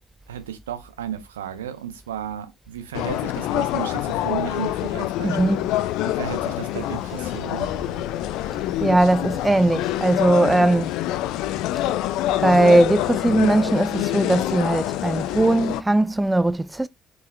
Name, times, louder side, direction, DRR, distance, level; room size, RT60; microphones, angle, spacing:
voice 1, 0.3-5.6 6.0-7.7, right 9 dB, 80° right, 1.1 m, -34 dB
sound 1, 2.9-15.8, left 14 dB, 65° left, 0.5 m, -26 dB
voice 2, 5.2-5.7 8.8-10.9 11.8-11.9 12.4-16.9, right 2 dB, 15° right, 0.4 m, -19 dB
sound 2, 5.9-14.3, right 2 dB, 50° right, 3.1 m, -47 dB
6.8 x 4.8 x 4.7 m
figure-of-eight pair, 45°, 0 cm